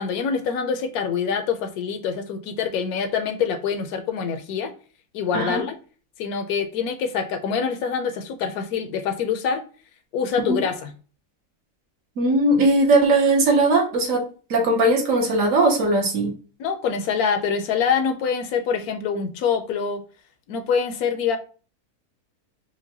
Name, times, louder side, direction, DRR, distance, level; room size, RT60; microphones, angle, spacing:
voice 1, 0.0-4.7 5.1-5.8 6.2-9.6 10.1-10.9 16.6-20.0 20.5-21.4, left 6 dB, 75° left, 8 dB, 1.0 m, -25 dB
voice 2, 12.2-16.3, right 2 dB, 65° right, 1 dB, 1.1 m, -19 dB
4.5 x 2.2 x 2.7 m, 0.37 s
omnidirectional pair, 1.6 m